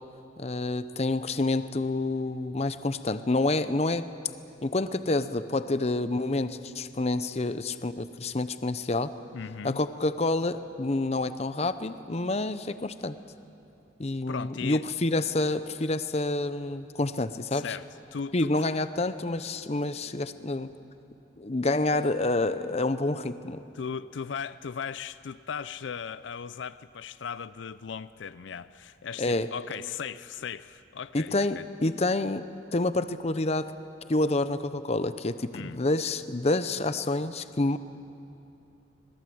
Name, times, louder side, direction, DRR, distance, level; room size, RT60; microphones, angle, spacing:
voice 1, 0.4-4.1 4.6-9.1 9.6-13.2 14.0-17.8 18.3-20.7 21.4-23.6 29.2-29.5 31.1-32.4 32.7-33.7 34.1-37.8, left 2 dB, 35° left, 12 dB, 0.7 m, -28 dB
voice 2, 9.3-9.8 14.3-14.8 17.5-18.5 23.7-31.7 35.5-35.8, left 6 dB, 75° left, 15 dB, 0.5 m, -37 dB
26.0 x 20.0 x 7.9 m, 2.7 s
head